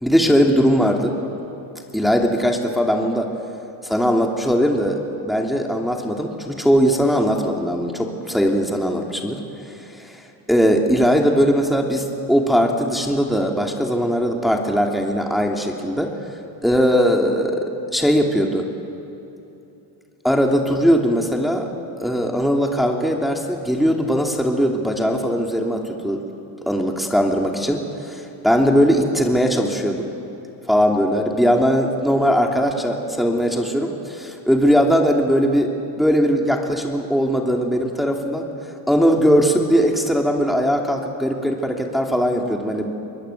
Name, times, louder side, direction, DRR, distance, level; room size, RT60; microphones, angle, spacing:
voice 1, 0.0-1.2 1.9-3.3 3.8-9.4 9.9-10.2 10.5-16.1 16.6-17.7 17.9-18.6 20.2-21.7 22.0-26.2 26.7-30.1 30.7-38.5 38.9-42.9, equal, ahead, 1 dB, 2.9 m, -19 dB
24.5 x 20.5 x 8.4 m, 2.9 s
supercardioid pair, 70°, 47 cm